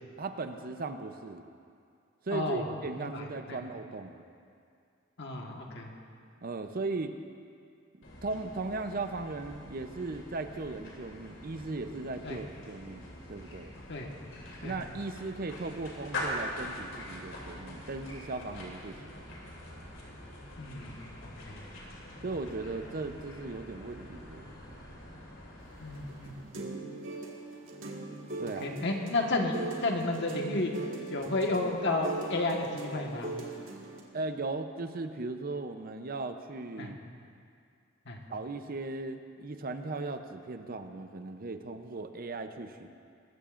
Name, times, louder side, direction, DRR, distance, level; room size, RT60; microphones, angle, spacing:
voice 1, 0.2-1.4 2.2-4.2 6.4-7.2 8.2-13.7 14.6-19.0 22.2-24.5 28.4-28.8 34.1-37.0 38.3-42.9, right 3 dB, 50° right, 7 dB, 0.7 m, -37 dB
voice 2, 2.3-2.6 3.0-3.2 3.5-3.6 5.2-5.9 12.2-12.4 13.9-14.1 14.6-14.8 20.6-20.9 21.2-21.6 25.8-26.3 28.4-30.7 31.1-33.3 36.8-36.9 38.1-38.2, left 2 dB, 60° left, 1 dB, 1.5 m, -32 dB
sound 1, 8.0-26.6, left 1 dB, 85° left, 3.0 m, -44 dB
sound 2, 25.8-34.0, right 2 dB, 80° right, 1.8 m, -41 dB
21.0 x 14.0 x 2.5 m, 2.3 s
head